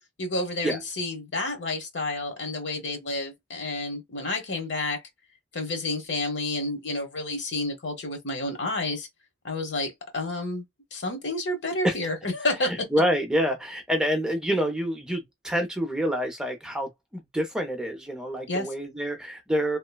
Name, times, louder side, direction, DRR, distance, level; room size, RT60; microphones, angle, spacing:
voice 1, 0.2-5.0 5.5-9.1 9.4-10.6 10.9-12.9 18.5-18.7, left 2 dB, 80° left, 1.1 m, -30 dB
voice 2, 12.9-19.8, equal, 5° right, 0.6 m, -27 dB
3.0 x 2.1 x 2.2 m
head